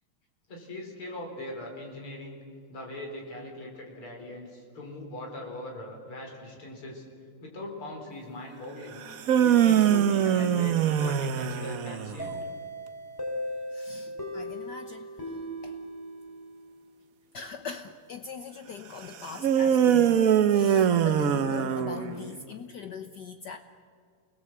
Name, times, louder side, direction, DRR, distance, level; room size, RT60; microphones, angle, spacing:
voice 1, 0.5-2.4 2.7-7.0 7.4-9.0 9.4-12.4, left 1 dB, 80° left, 1 dB, 5.1 m, -40 dB
sound 1, 9.0-12.3 19.4-22.4, right 9 dB, 55° right, 1.0 m, -23 dB
sound 2, 12.2-16.9, equal, 10° left, 4.0 m, -37 dB
voice 2, 13.7-15.1 15.6-15.7 17.3-23.6, left 6 dB, 60° left, 7 dB, 1.4 m, -41 dB
28.5 x 21.0 x 7.9 m, 2.2 s
omnidirectional pair, 2.4 m